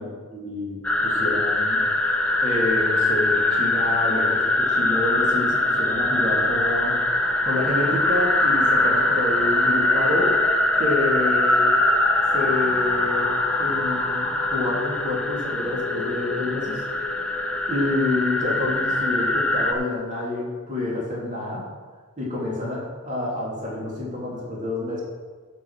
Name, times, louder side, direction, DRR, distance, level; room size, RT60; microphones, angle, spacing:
voice 1, 0.0-1.8 2.4-7.0 7.4-10.4 10.8-11.7 12.3-16.8 17.7-21.6 22.2-25.0, left 2 dB, 35° right, -5 dB, 3.4 m, -28 dB
sound 1, 0.8-19.7, left 2 dB, 5° left, 1.1 m, -22 dB
9.8 x 7.1 x 6.7 m, 1.4 s
head